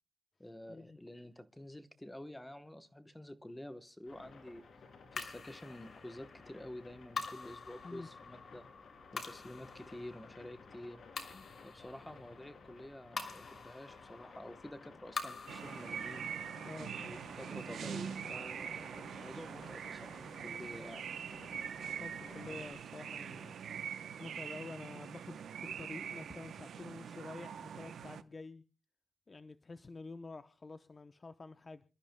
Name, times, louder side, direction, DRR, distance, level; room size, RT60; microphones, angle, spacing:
voice 1, 0.4-4.6 5.1-8.7 9.1-11.0 11.6-16.3 17.0-21.0, left 1 dB, 10° left, 9 dB, 1.0 m, -49 dB
sound 1, 4.1-22.7, left 4 dB, 75° left, 3.0 m, -56 dB
sound 2, 5.2-19.7, left 4 dB, 60° left, 2.8 m, -48 dB
sound 3, 15.5-28.2, right 8 dB, 90° right, 0.7 m, -43 dB
voice 2, 21.4-23.5 24.2-25.4 25.8-28.6 29.3-31.8, left 3 dB, 35° left, 10 dB, 0.7 m, -49 dB
26.5 x 13.5 x 2.2 m, 0.33 s
cardioid pair, 95°, 0 cm